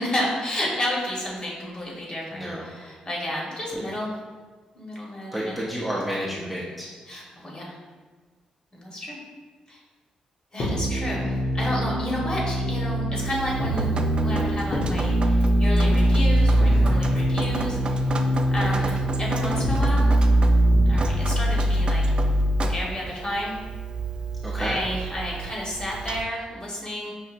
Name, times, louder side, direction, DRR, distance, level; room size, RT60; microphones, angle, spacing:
voice 1, 0.0-4.1 4.7-5.6 5.9-6.0 7.1-7.8 8.7-9.2 9.7-9.8 10.5-13.9 14.2-18.2 18.5-20.2 20.9-22.0 22.7-23.6 24.6-27.1, left 1 dB, 35° left, -4 dB, 1.2 m, -31 dB
voice 2, 2.3-2.7 3.7-3.8 5.3-6.9 16.7-17.0 18.6-18.9 24.4-24.8, equal, ahead, -6 dB, 0.7 m, -31 dB
sound 1, 10.6-22.6, equal, 60° left, 0.8 m, -22 dB
Drip, 13.2-26.2, right 4 dB, 40° right, 0.3 m, -34 dB
5.6 x 2.6 x 2.5 m, 1.4 s
cardioid pair, 80°, 2 cm